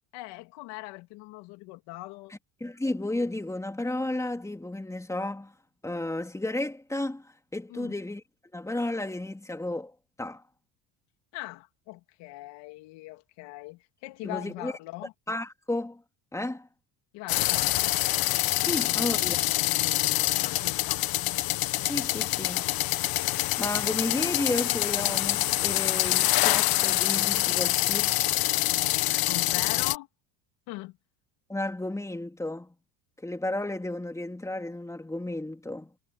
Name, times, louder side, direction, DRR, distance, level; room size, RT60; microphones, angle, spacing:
voice 1, 0.1-2.3 7.7-7.9 11.3-15.1 17.1-17.9 18.7-19.0 19.4-21.0 29.3-30.1 30.7-31.0, left 21 dB, 75° left, 2.8 m, -41 dB
voice 2, 2.6-5.5 5.8-8.2 8.5-9.9 10.2-10.4 14.2-14.7 15.3-16.0 16.3-16.7 18.6-19.4 21.9-22.7 23.6-28.3 31.5-32.7 33.2-35.9, left 1 dB, 5° left, 3.4 m, -33 dB
sound 1, 17.3-30.0, left 17 dB, 55° left, 1.1 m, -26 dB
cardioid pair, 115°, 42 cm